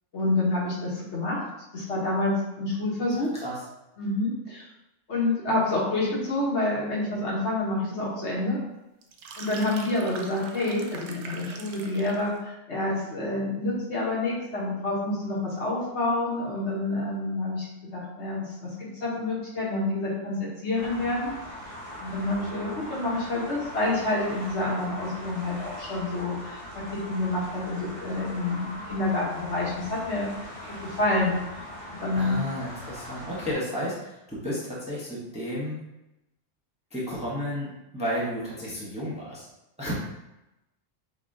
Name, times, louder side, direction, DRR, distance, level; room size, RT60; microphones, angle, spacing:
voice 1, 0.1-1.4 1.7-3.3 4.0-4.7 5.1-8.6 9.4-17.7 17.9-21.3 22.0-26.6 26.9-30.3 30.7-31.4 32.0-32.4, left 2 dB, 60° left, -5 dB, 1.4 m, -28 dB
sound 1, 9.0-12.3, right 4 dB, 70° right, 0.9 m, -42 dB
sound 2, 20.7-33.5, equal, 30° left, 1.0 m, -41 dB
voice 2, 32.1-35.8 36.9-39.5 39.8-39.9, equal, 5° right, -7 dB, 0.9 m, -32 dB
6.5 x 2.3 x 2.7 m, 0.94 s
omnidirectional pair, 1.4 m